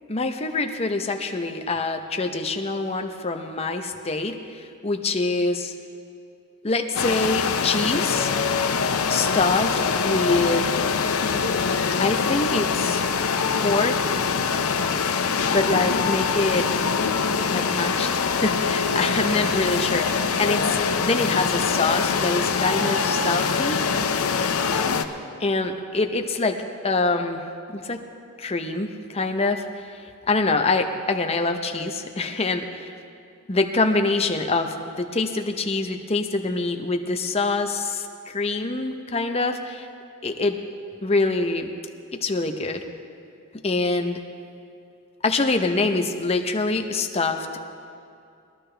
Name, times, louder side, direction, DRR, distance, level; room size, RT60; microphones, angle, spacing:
voice 1, 0.1-5.7 6.6-8.4 9.1-10.7 12.0-13.0 13.6-14.2 15.5-16.7 17.5-23.8 25.4-26.6 26.8-27.4 27.7-28.0 28.4-29.7 30.3-32.9 33.5-39.9 40.2-40.6 41.0-41.7 42.1-42.8 43.6-44.2 45.2-47.4, left 3 dB, 30° left, 5 dB, 0.8 m, -25 dB
sound 1, 6.9-25.0, left 5 dB, 85° left, 0.7 m, -24 dB
21.0 x 12.5 x 3.4 m, 2.6 s
head